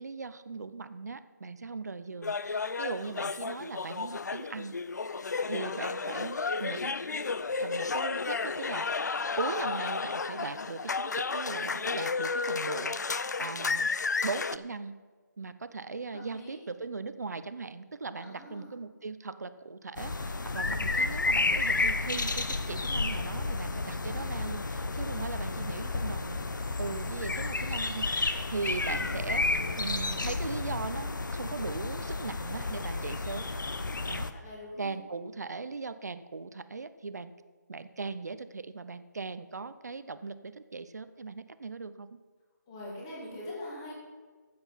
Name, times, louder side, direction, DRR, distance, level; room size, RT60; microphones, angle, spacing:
voice 1, 0.0-4.7 5.5-7.0 7.6-13.9 14.2-14.9 15.4-26.4 26.8-28.1 28.5-29.5 29.8-33.5 34.1-34.3 34.8-37.3 37.7-42.2, right 4 dB, 60° right, 12 dB, 0.7 m, -39 dB
sound 1, 2.2-14.6, left 4 dB, 65° left, 0.5 m, -32 dB
voice 2, 16.1-16.6 18.2-18.7 28.8-29.2 29.5-29.8 34.3-35.0 42.7-43.9, left 1 dB, 15° left, -3 dB, 2.0 m, -43 dB
sound 2, 20.0-34.3, left 3 dB, 85° left, 1.0 m, -31 dB
12.5 x 7.8 x 5.7 m, 1.5 s
figure-of-eight pair, 175°, 10 cm